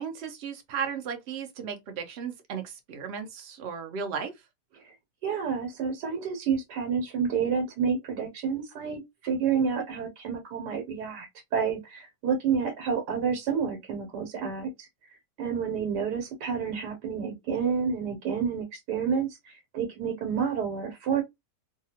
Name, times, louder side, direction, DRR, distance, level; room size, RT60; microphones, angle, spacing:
voice 1, 0.0-4.3, right 6 dB, 60° right, 0.7 m, -35 dB
voice 2, 5.2-14.9 15.4-21.2, right 6 dB, 80° right, 1.4 m, -29 dB
2.7 x 2.3 x 2.7 m
omnidirectional pair, 1.8 m